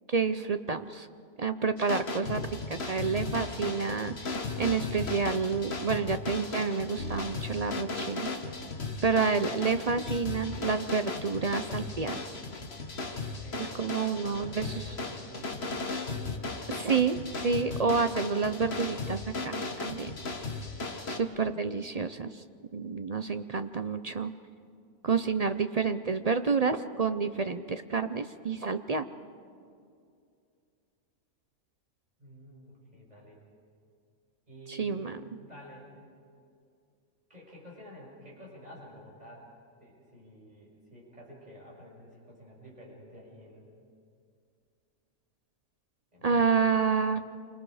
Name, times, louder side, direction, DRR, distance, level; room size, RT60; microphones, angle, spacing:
voice 1, 0.1-1.1 1.4-2.4 2.7-8.3 9.0-12.2 13.6-14.7 16.7-17.2 17.4-20.1 21.1-22.4 22.7-24.3 25.0-29.1 34.7-35.2 46.2-47.2, right 5 dB, 50° right, 9 dB, 0.4 m, -29 dB
sound 1, 1.8-21.2, left 3 dB, 45° left, 1.8 m, -36 dB
voice 2, 13.3-16.0 32.2-33.4 34.5-35.0 35.4-35.9 37.3-39.5 39.8-43.7 46.1-46.6, equal, 25° right, -3 dB, 6.3 m, -50 dB
29.0 x 25.0 x 4.9 m, 2.4 s
omnidirectional pair, 1.5 m